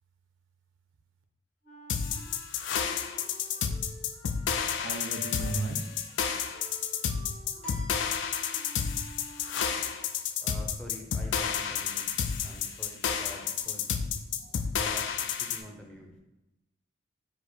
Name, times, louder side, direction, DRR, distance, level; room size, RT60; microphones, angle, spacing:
Wind instrument woodwind instrument, 1.6-9.8, left 3 dB, 45° left, 1.4 m, -50 dB
sound 1, 1.9-15.6, left 7 dB, 65° left, 0.3 m, -31 dB
voice 1, 4.8-5.9 11.9-12.7 14.0-14.5, right 3 dB, 65° right, 5 dB, 0.5 m, -38 dB
sound 2, 7.6-9.1, right 1 dB, 25° left, 1.1 m, -48 dB
voice 2, 10.4-12.0 12.4-13.8 14.8-16.1, equal, 5° left, 0 dB, 0.6 m, -46 dB
4.9 x 2.0 x 4.4 m, 0.96 s
head